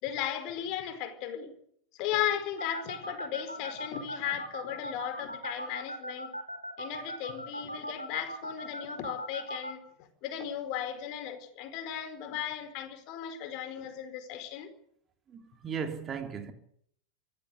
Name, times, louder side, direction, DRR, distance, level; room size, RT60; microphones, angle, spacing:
voice 1, 0.0-1.5 1.9-6.3 6.8-9.8 10.2-14.7, left 10 dB, 40° left, 4.5 m, -36 dB
sound 1, 2.6-9.7, right 1 dB, 90° right, 3.4 m, -38 dB
voice 2, 15.3-16.5, right 6 dB, 25° right, 3.4 m, -36 dB
25.5 x 16.0 x 8.4 m
figure-of-eight pair, 90°, 0 cm